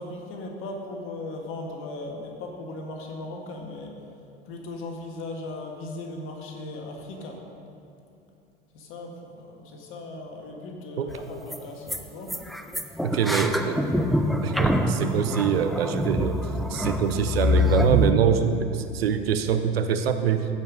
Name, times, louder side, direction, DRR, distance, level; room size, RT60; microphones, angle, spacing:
voice 1, 0.0-3.9 4.5-7.4 8.7-12.4, left 2 dB, 40° left, 1 dB, 1.9 m, -37 dB
sound 1, 11.1-11.2 11.5-11.6 11.9-12.0 12.3-18.1, left 1 dB, ahead, 0.4 m, -25 dB
voice 2, 13.0-13.8 14.4-16.4 16.7-20.5, right 8 dB, 70° right, 8 dB, 0.7 m, -24 dB
15.0 x 5.5 x 5.2 m, 2.6 s
figure-of-eight pair, 80°, 31 cm